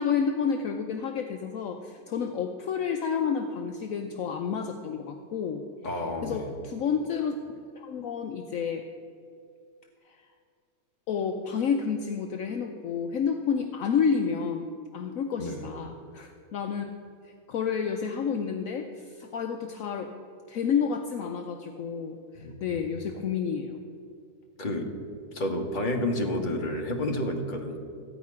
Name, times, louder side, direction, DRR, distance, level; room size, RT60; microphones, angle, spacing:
voice 1, 0.0-5.9 6.2-7.4 7.8-8.9 10.1-10.2 11.1-14.7 14.9-16.9 17.3-20.1 20.5-23.8, left 6 dB, 65° left, 5 dB, 1.0 m, -30 dB
voice 2, 5.8-6.5 15.4-15.6 22.4-22.9 24.6-25.0 25.3-27.8, left 1 dB, 35° left, 1 dB, 1.4 m, -30 dB
15.0 x 5.1 x 9.4 m, 2.3 s
omnidirectional pair, 1.6 m